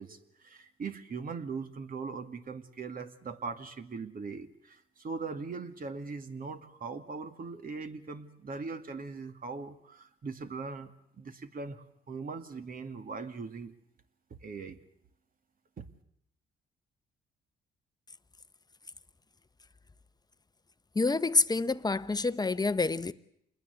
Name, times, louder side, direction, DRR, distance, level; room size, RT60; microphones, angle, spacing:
voice 1, 0.0-13.7 14.4-14.8 15.8-15.9, right 4 dB, 45° right, 2.3 m, -40 dB
voice 2, 20.9-23.1, left 3 dB, 20° left, 1.0 m, -27 dB
27.5 x 21.0 x 8.2 m
cardioid pair, 90°, 20 cm